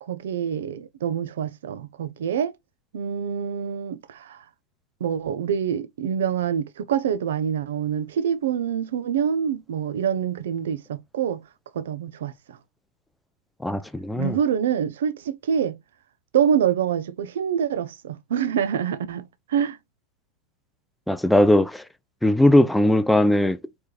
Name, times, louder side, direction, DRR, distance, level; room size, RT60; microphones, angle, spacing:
voice 1, 0.0-2.5 2.9-4.4 5.0-11.4 11.7-12.3 14.1-15.7 16.3-19.8, right 8 dB, 60° right, 0.5 m, -26 dB
voice 2, 13.6-14.4 21.1-21.8 22.2-23.6, left 1 dB, 5° left, 0.4 m, -19 dB
4.4 x 3.3 x 2.5 m
figure-of-eight pair, 90°, 0 cm